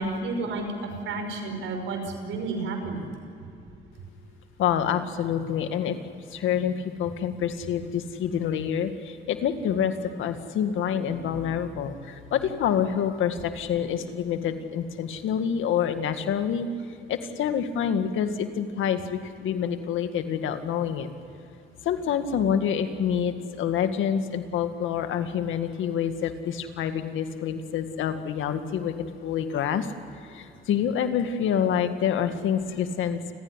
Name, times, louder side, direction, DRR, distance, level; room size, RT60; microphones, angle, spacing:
voice 1, 0.0-3.1, right 3 dB, 80° right, 5 dB, 5.7 m, -31 dB
voice 2, 4.6-6.0 6.3-16.7 17.1-21.1 21.8-29.9 30.3-33.2, left 8 dB, 80° left, 8 dB, 2.0 m, -27 dB
29.5 x 16.0 x 10.0 m, 2.7 s
cardioid pair, 90°, 20 cm